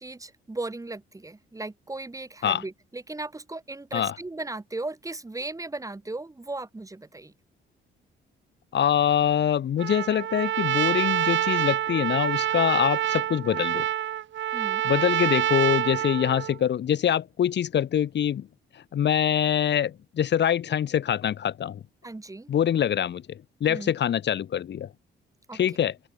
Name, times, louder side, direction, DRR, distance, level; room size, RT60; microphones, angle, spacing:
voice 1, 0.0-7.3 14.5-14.9 22.0-22.5 23.6-23.9 25.5-25.6, right 2 dB, 15° right, 4.1 m, -37 dB
voice 2, 8.7-13.9 14.8-18.5 18.7-21.8 22.5-24.9 25.5-25.9, left 9 dB, 60° left, 3.1 m, -24 dB
Trumpet, 9.8-16.6, right 12 dB, 70° right, 1.9 m, -26 dB
open air
cardioid pair, 90°, 20 cm